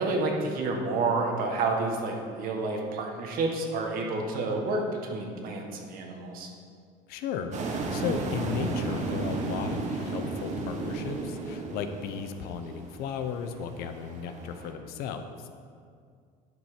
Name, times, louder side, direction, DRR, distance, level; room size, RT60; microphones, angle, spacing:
voice 1, 0.0-6.5, right 3 dB, 60° right, 1 dB, 1.6 m, -29 dB
voice 2, 7.1-15.5, left 6 dB, 70° left, 8 dB, 0.8 m, -35 dB
sound 1, 7.5-14.7, right 3 dB, 45° right, 1.3 m, -34 dB
10.5 x 5.5 x 5.1 m, 2.2 s
supercardioid pair, 105°, 17 cm